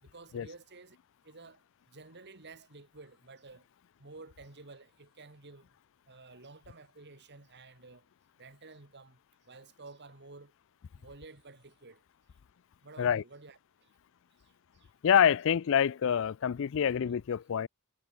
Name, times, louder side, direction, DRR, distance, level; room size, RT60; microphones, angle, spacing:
voice 1, 0.0-1.0 1.2-1.6 1.9-3.7 4.0-5.7 6.1-8.0 8.4-9.2 9.5-10.5 11.0-12.0 12.8-13.9 14.4-14.9, right 3 dB, 50° right, 2.3 m, -52 dB
voice 2, 15.0-17.7, left 8 dB, 60° left, 0.4 m, -26 dB
head